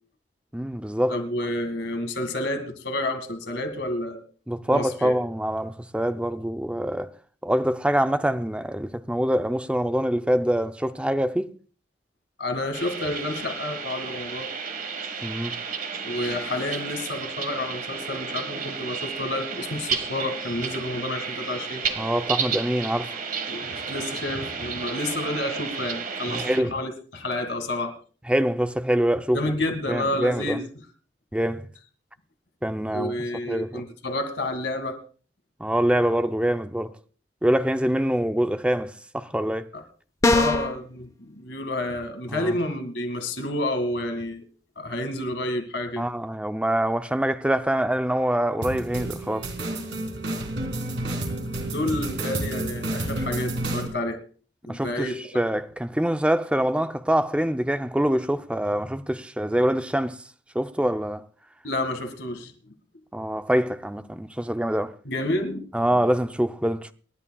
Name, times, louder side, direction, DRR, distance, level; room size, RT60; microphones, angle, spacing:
voice 1, 0.5-1.2 4.5-7.1 7.4-11.5 15.2-15.6 22.0-23.2 26.3-26.8 28.3-29.4 29.9-30.6 31.3-31.7 32.6-33.8 35.6-37.0 37.4-39.7 42.3-42.5 46.0-49.5 54.7-60.2 60.5-61.3 63.1-64.9 65.7-66.9, right 1 dB, 5° right, 0.6 m, -25 dB
voice 2, 1.1-4.2 4.7-5.1 12.4-14.5 16.0-21.8 23.5-27.9 29.3-30.6 32.9-35.0 39.7-39.8 40.3-44.4 44.8-46.1 51.7-54.2 54.7-55.4 61.6-62.5 65.1-66.1, left 1 dB, 75° left, 2.1 m, -30 dB
sound 1, 12.7-26.6, right 6 dB, 50° right, 1.6 m, -32 dB
sound 2, 40.2-40.8, left 2 dB, 20° left, 1.0 m, -20 dB
sound 3, 48.6-53.9, right 1 dB, 90° right, 3.8 m, -30 dB
27.0 x 11.0 x 2.3 m
head